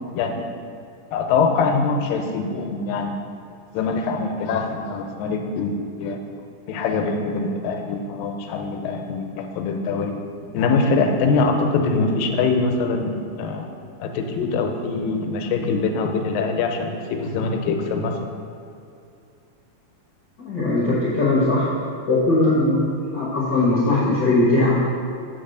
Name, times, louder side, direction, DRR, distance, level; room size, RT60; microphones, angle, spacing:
voice 1, 0.1-0.5 1.1-3.1 3.7-6.2 6.7-10.2 10.5-13.7 14.0-18.1, left 4 dB, 85° left, 4 dB, 2.4 m, -23 dB
voice 2, 20.4-21.7 22.1-24.8, left 2 dB, 65° left, -8 dB, 1.1 m, -19 dB
7.7 x 3.9 x 6.6 m, 2.6 s
omnidirectional pair, 3.9 m